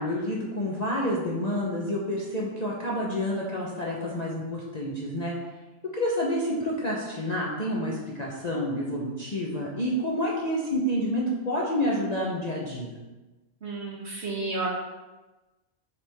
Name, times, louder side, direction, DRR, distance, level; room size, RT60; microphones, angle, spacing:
voice 1, 0.0-5.3 5.9-12.9, equal, 35° left, -5 dB, 0.9 m, -29 dB
voice 2, 13.6-14.7, right 3 dB, 45° right, -4 dB, 1.6 m, -31 dB
6.9 x 4.9 x 3.5 m, 1.1 s
omnidirectional pair, 1.5 m